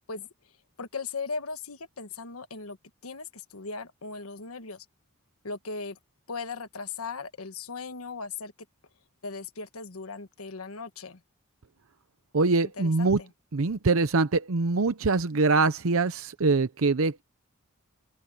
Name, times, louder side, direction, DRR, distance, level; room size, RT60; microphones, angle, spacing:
voice 1, 0.8-2.8 3.0-4.8 5.4-6.0 6.3-8.5 9.2-11.2 12.8-13.3, left 4 dB, 85° left, 1.4 m, -38 dB
voice 2, 12.3-13.2 13.5-17.2, right 3 dB, 70° right, 0.7 m, -24 dB
head